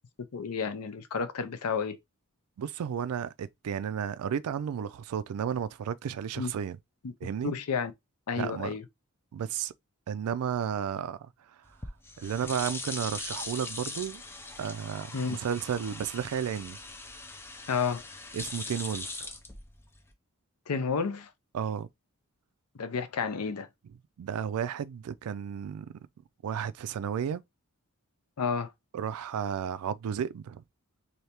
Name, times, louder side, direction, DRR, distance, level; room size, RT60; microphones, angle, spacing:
voice 1, 0.3-2.0 6.4-6.5 7.0-7.1 7.4-7.9 8.3-8.8 15.1-15.4 17.7-18.0 20.7-21.3 22.7-23.7 28.4-28.7, left 5 dB, 85° left, 0.6 m, -31 dB
voice 2, 2.6-6.8 7.2-7.5 8.4-8.7 9.3-9.7 10.1-11.2 12.2-14.2 14.6-16.8 18.3-19.3 21.5-21.9 24.2-25.9 26.4-27.4 28.9-30.6, right 8 dB, 80° right, 0.3 m, -33 dB
sound 1, 11.7-20.1, left 3 dB, 10° left, 0.4 m, -41 dB
3.3 x 2.7 x 2.8 m
head